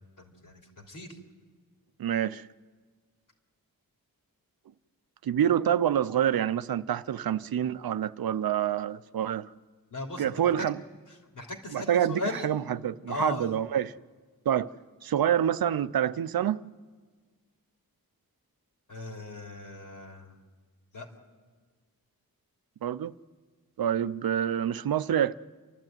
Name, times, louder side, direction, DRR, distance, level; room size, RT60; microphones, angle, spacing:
voice 1, 0.2-1.2 9.9-10.7 11.1-12.5 13.1-13.6 18.9-20.4 20.9-21.1, left 2 dB, 60° left, 3.3 m, -38 dB
voice 2, 2.0-2.5 5.2-9.5 10.2-10.8 11.7-13.9 14.5-14.7 15.0-16.6 22.8-23.1 23.8-25.3, right 10 dB, 75° right, 0.6 m, -27 dB
29.5 x 12.0 x 9.0 m
cardioid pair, 55°, 36 cm